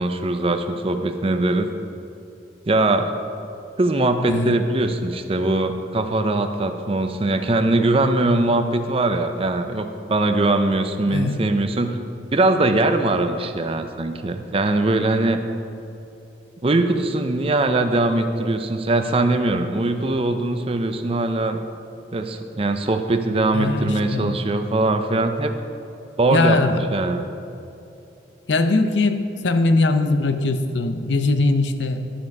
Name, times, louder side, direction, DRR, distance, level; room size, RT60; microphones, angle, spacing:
voice 1, 0.0-1.7 2.7-3.1 3.8-12.0 12.3-15.4 16.6-21.6 22.1-25.5 26.2-26.6 26.9-27.2, right 2 dB, 30° right, 7 dB, 0.5 m, -21 dB
voice 2, 11.1-11.5 23.5-24.3 26.3-26.8 28.5-32.1, left 3 dB, 75° left, 8 dB, 0.6 m, -21 dB
11.5 x 5.9 x 5.3 m, 2.8 s
head